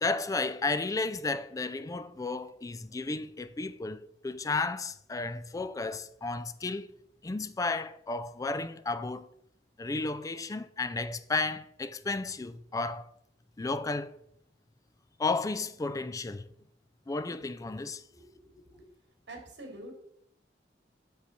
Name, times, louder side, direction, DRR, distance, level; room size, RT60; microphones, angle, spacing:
voice 1, 0.0-6.9 7.2-9.3 9.8-13.1 13.6-14.2 15.2-16.5 17.1-18.0, left 3 dB, 20° left, 0.4 m, -33 dB
voice 2, 18.1-18.9 19.3-19.9, right 1 dB, 85° right, 2.6 m, -47 dB
6.7 x 5.3 x 5.8 m
head